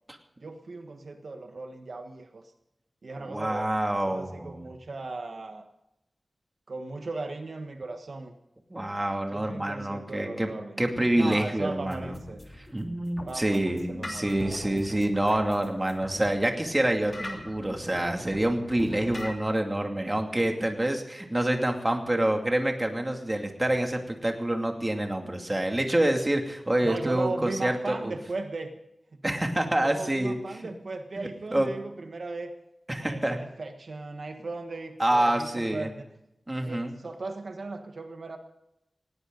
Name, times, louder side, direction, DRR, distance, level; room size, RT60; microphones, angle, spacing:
voice 1, 0.4-2.4 3.0-3.7 4.1-5.6 6.7-8.3 9.3-10.8 11.1-12.4 13.3-14.4 26.8-28.7 29.1-29.2 29.8-32.5 33.0-36.0 36.6-38.4, right 3 dB, 65° right, 5 dB, 1.3 m, -37 dB
voice 2, 3.2-4.7 8.7-10.5 10.8-12.2 12.7-28.1 29.2-30.6 31.5-31.7 32.9-33.4 35.0-35.9 36.5-36.9, right 1 dB, 20° right, 3 dB, 2.5 m, -27 dB
sound 1, 11.8-19.3, left 1 dB, 30° left, 2.7 m, -42 dB
19.5 x 17.0 x 4.0 m, 0.85 s
wide cardioid pair, 100°, 0 cm